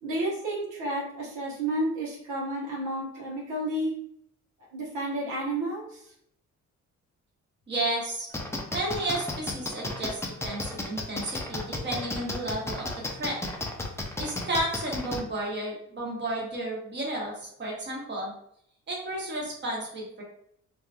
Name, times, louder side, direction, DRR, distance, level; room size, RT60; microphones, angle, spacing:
voice 1, 0.0-3.9 4.7-6.1, right 1 dB, 90° right, -5 dB, 1.1 m, -31 dB
voice 2, 7.7-8.3 8.7-12.9 13.1-13.4 14.2-18.3 18.9-20.2, right 1 dB, 35° right, -3 dB, 1.2 m, -32 dB
sound 1, 8.3-15.2, left 2 dB, 10° left, 0.4 m, -32 dB
3.0 x 2.6 x 2.3 m, 0.70 s
cardioid pair, 90°, 30 cm